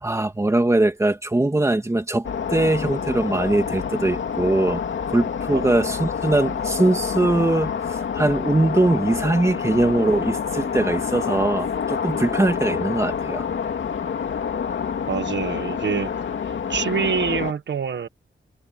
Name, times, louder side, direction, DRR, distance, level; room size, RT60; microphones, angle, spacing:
voice 1, 0.0-4.8 5.1-13.5, right 2 dB, 15° right, 2.4 m, -21 dB
sound 1, 2.2-17.5, left 7 dB, 75° left, 2.6 m, -27 dB
voice 2, 15.1-16.1 16.4-18.1, right 7 dB, 65° right, 1.6 m, -26 dB
wide cardioid pair, 150°, 20 cm